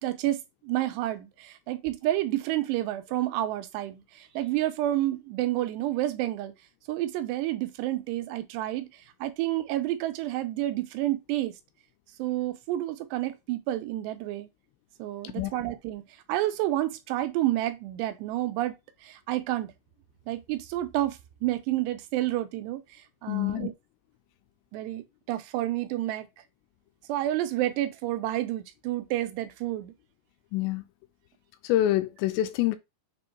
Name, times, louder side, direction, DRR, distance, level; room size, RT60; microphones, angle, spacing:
voice 1, 0.0-6.5 6.9-11.5 12.2-14.5 15.0-18.8 19.0-19.7 20.3-23.7 24.7-26.3 27.1-29.9, right 14 dB, 80° right, 2.8 m, -30 dB
voice 2, 23.3-23.7 30.5-30.8 31.6-32.8, left 14 dB, 85° left, 2.8 m, -26 dB
7.1 x 3.0 x 4.4 m
omnidirectional pair, 5.0 m